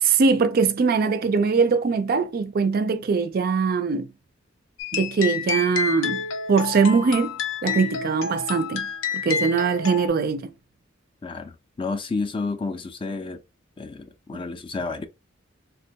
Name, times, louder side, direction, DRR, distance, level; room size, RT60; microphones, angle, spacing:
voice 1, 0.0-4.1 4.9-6.2 6.5-10.5 14.3-14.4, right 5 dB, 50° right, 0.4 m, -22 dB
sound 1, 4.8-10.1, left 5 dB, 80° left, 0.6 m, -29 dB
voice 2, 11.2-13.4 13.8-15.1, left 3 dB, 25° left, 0.4 m, -30 dB
3.4 x 2.2 x 2.7 m
head